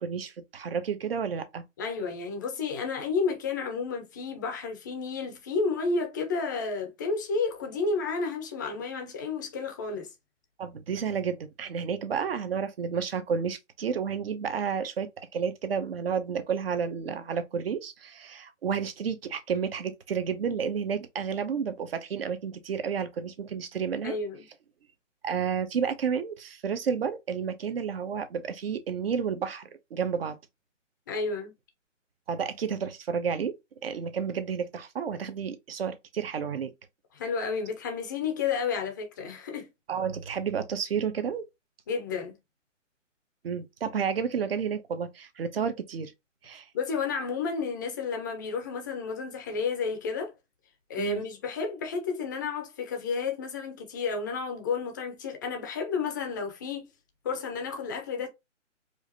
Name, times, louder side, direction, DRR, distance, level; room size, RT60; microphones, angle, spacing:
voice 1, 0.0-1.6 10.6-24.2 25.2-30.4 32.3-33.5 33.8-36.7 39.9-41.4 43.4-46.1 46.4-46.7 51.0-51.3, right 6 dB, 50° right, 0.9 m, -31 dB
voice 2, 1.8-10.1 24.0-24.5 31.1-31.5 37.1-39.7 41.9-42.4 46.7-50.3 50.9-56.9 57.2-58.3, left 4 dB, 15° left, 0.5 m, -31 dB
4.8 x 2.5 x 2.8 m
hypercardioid pair, 145°, 38 cm